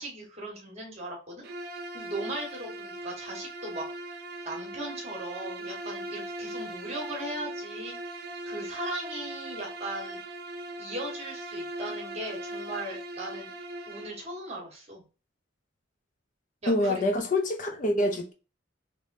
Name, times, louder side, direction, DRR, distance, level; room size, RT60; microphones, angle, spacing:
voice 1, 0.0-1.4 1.9-3.9 4.4-7.9 8.4-10.2 10.8-13.5 13.9-15.0 16.6-17.0, right 1 dB, 35° right, 1.4 m, -38 dB
Bowed string instrument, 1.4-14.2, right 1 dB, 50° right, 0.4 m, -39 dB
voice 2, 16.7-18.3, left 1 dB, 40° left, 0.5 m, -26 dB
3.4 x 3.0 x 2.6 m
head